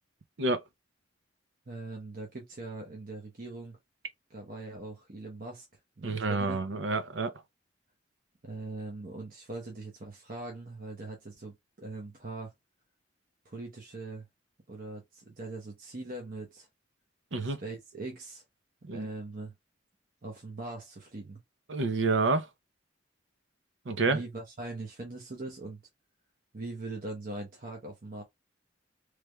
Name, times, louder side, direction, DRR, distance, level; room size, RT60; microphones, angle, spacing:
voice 1, 1.7-3.8 4.3-5.7 6.0-6.6 8.4-12.5 13.4-14.3 14.7-16.7 17.4-18.4 18.9-19.5 20.2-21.4 24.0-25.8 26.5-28.2, right 2 dB, 50° right, 0.9 m, -41 dB
voice 2, 6.0-7.3 17.3-17.6 18.8-19.1 21.7-22.5 23.9-24.2, right 3 dB, 85° right, 0.6 m, -28 dB
3.3 x 3.2 x 2.3 m
head